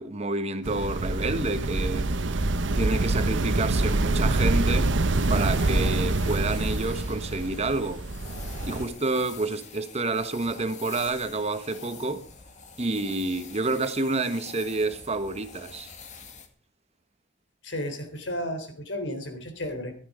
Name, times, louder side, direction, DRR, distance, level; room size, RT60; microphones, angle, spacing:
voice 1, 0.0-2.1 2.7-4.9 5.3-8.1 8.6-12.3 12.8-15.9, right 3 dB, 35° right, 1.3 m, -29 dB
sound 1, 0.6-8.8, right 2 dB, 85° right, 1.0 m, -26 dB
sound 2, 5.1-16.5, left 5 dB, 40° left, 2.1 m, -45 dB
voice 2, 17.6-19.9, left 1 dB, 80° left, 3.7 m, -33 dB
14.5 x 12.0 x 5.0 m
head